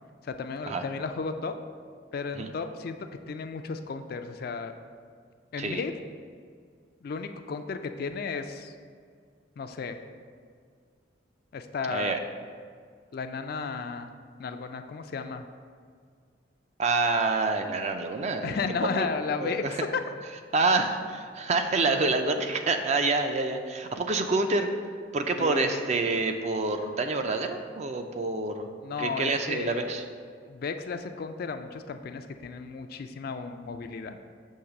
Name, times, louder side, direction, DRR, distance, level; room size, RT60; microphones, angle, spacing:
voice 1, 0.2-1.5 2.1-3.0 3.3-4.7 5.5-5.9 7.0-8.7 9.6-10.0 11.5-12.2 13.1-14.1 14.4-15.4 18.4-20.0 25.4-25.8 28.8-30.0 30.4-34.2, left 5 dB, 50° left, 8 dB, 0.3 m, -34 dB
voice 2, 16.8-18.5 19.0-19.1 19.4-19.8 20.5-24.7 25.1-28.7 29.0-30.0, right 3 dB, 35° right, 6 dB, 0.4 m, -27 dB
6.5 x 3.1 x 5.8 m, 2.1 s
head